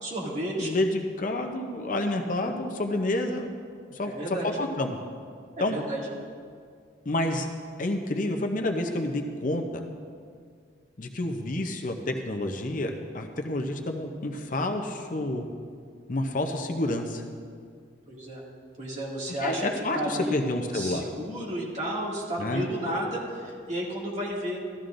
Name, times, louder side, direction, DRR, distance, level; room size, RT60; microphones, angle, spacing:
voice 1, 0.0-0.7 4.0-4.6 5.6-6.1 18.1-18.4 18.8-19.7 19.9-20.4 20.7-24.6, right 1 dB, 40° right, -5 dB, 2.4 m, -32 dB
voice 2, 0.6-3.5 3.9-4.2 4.4-5.0 5.6-5.8 7.1-7.5 7.8-9.8 11.0-12.9 13.1-15.4 16.1-17.2 19.4-21.1 22.4-22.7, left 1 dB, 45° left, 5 dB, 0.7 m, -29 dB
14.5 x 12.5 x 2.6 m, 2.2 s
head